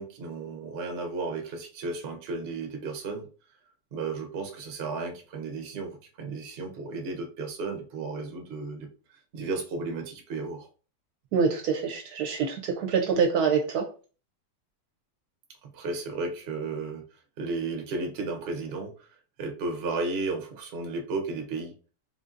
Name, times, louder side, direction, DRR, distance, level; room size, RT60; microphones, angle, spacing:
voice 1, 0.0-3.3 3.9-8.9 9.3-10.7 15.6-17.0 17.4-19.1 19.4-21.7, right 3 dB, 55° right, 4 dB, 0.7 m, -34 dB
voice 2, 11.3-13.8, right 6 dB, 70° right, 3 dB, 1.0 m, -25 dB
3.8 x 2.6 x 2.4 m, 0.36 s
omnidirectional pair, 1.9 m